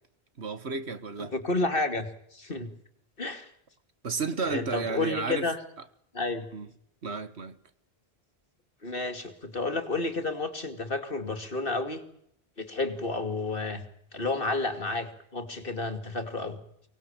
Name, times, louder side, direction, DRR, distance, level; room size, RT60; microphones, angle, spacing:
voice 1, 0.4-1.3 4.0-5.5 6.5-6.7 7.0-7.6, right 4 dB, 75° right, 1.9 m, -32 dB
voice 2, 1.2-2.7 3.2-3.5 4.4-5.6 6.1-6.4 8.8-12.0 12.6-13.8 14.1-16.6, left 2 dB, 55° left, 2.8 m, -31 dB
24.0 x 19.0 x 9.0 m
omnidirectional pair, 1.1 m